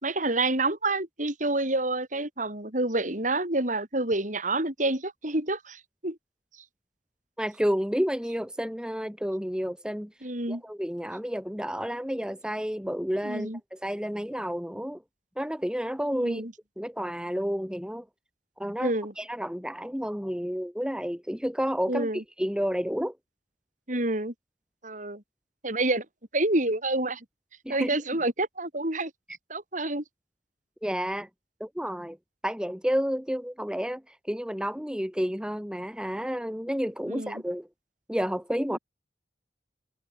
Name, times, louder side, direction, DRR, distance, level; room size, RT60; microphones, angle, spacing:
voice 1, 0.0-6.2 10.2-10.6 13.2-13.6 16.1-16.5 18.8-19.1 21.9-22.2 23.9-24.3 24.8-25.2 25.6-26.1 26.3-27.2 27.7-29.1 29.5-30.0 37.1-37.4, right 2 dB, 45° right, 6.2 m, -28 dB
voice 2, 7.4-10.1 10.5-15.0 15.4-16.4 16.8-18.1 18.6-22.1 22.4-23.1 27.6-28.0 30.8-31.3 31.6-32.2 32.4-37.7 38.1-38.8, equal, 5° right, 3.0 m, -30 dB
head